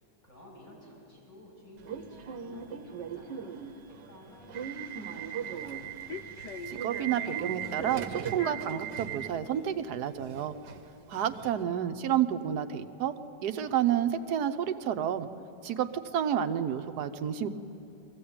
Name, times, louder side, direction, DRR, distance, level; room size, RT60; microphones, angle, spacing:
voice 1, 0.0-5.8 11.2-11.9, left 1 dB, 25° left, -4 dB, 6.6 m, -53 dB
Subway metro underground / Alarm, 1.8-11.6, right 8 dB, 90° right, 1.5 m, -39 dB
sound 1, 5.4-11.0, left 6 dB, 75° left, 1.3 m, -45 dB
voice 2, 6.7-10.5 11.1-13.1 13.4-15.3 15.6-17.5, right 9 dB, 70° right, 10 dB, 1.3 m, -30 dB
22.0 x 15.5 x 8.7 m, 2.8 s
omnidirectional pair, 1.8 m